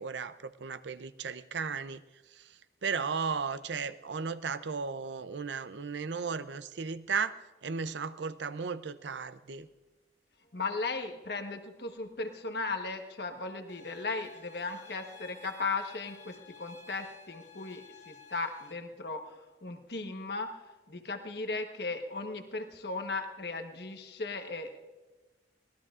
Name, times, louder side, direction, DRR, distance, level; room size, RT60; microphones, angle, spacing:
voice 1, 0.0-2.0 2.3-9.7, right 5 dB, 90° right, 13 dB, 0.6 m, -35 dB
voice 2, 10.5-19.2 19.6-20.5 20.9-24.8, left 3 dB, 70° left, 5 dB, 1.2 m, -36 dB
sound 1, 13.7-18.7, left 5 dB, 45° left, 1.5 m, -53 dB
24.0 x 18.5 x 2.5 m, 1.2 s
head